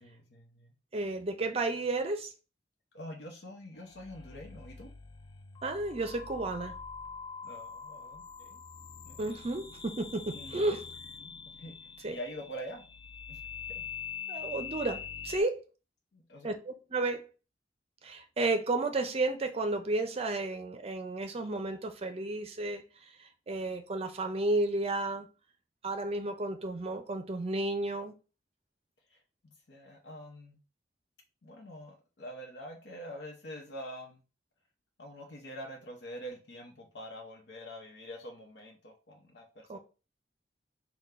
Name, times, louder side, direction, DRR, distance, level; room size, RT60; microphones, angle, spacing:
voice 1, 0.0-0.7 2.9-4.9 7.4-8.6 9.0-9.4 10.3-10.6 11.2-11.3 11.6-11.8 12.1-12.8 13.3-13.4 13.7-13.8 16.1-16.5 29.4-30.6 31.4-34.2 35.0-39.8, equal, 80° left, 0.9 m, -45 dB
voice 2, 0.9-2.3 5.6-6.7 9.2-10.9 12.0-12.2 14.3-15.6 16.4-17.2 18.0-25.3 25.8-28.1 39.7-39.8, right 2 dB, 35° right, 0.5 m, -32 dB
sound 1, 3.8-15.4, left 7 dB, 25° left, 0.3 m, -44 dB
3.7 x 2.3 x 4.3 m
head